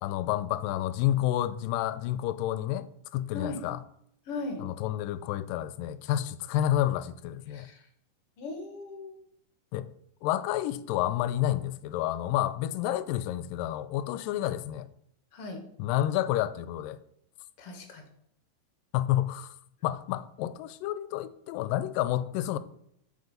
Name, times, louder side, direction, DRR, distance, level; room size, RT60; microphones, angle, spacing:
voice 1, 0.0-3.8 4.6-7.7 9.7-9.9 10.2-14.9 15.8-17.0 18.9-19.6 19.8-22.6, left 13 dB, 85° left, 2.2 m, -29 dB
voice 2, 4.3-4.6 7.5-7.8 8.4-9.2 15.3-15.6 17.6-18.0, left 3 dB, 55° left, 1.9 m, -38 dB
8.0 x 7.1 x 5.1 m
omnidirectional pair, 3.9 m